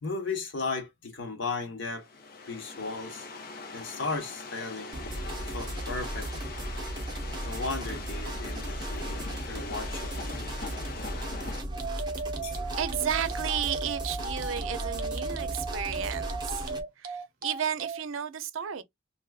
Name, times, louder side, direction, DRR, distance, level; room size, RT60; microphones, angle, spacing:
voice 1, 0.0-2.1 2.5-3.3 3.7-5.1 5.4-6.6 7.4-10.3 12.4-12.6, left 3 dB, 70° left, 1.2 m, -36 dB
sound 1, 1.9-11.6, left 3 dB, 50° left, 0.9 m, -42 dB
sound 2, 4.9-16.8, right 1 dB, 20° right, 1.1 m, -36 dB
sound 3, 11.7-18.0, right 4 dB, 45° right, 0.9 m, -36 dB
voice 2, 12.8-16.7 17.0-18.8, right 9 dB, 85° right, 0.5 m, -33 dB
3.4 x 3.0 x 2.3 m
head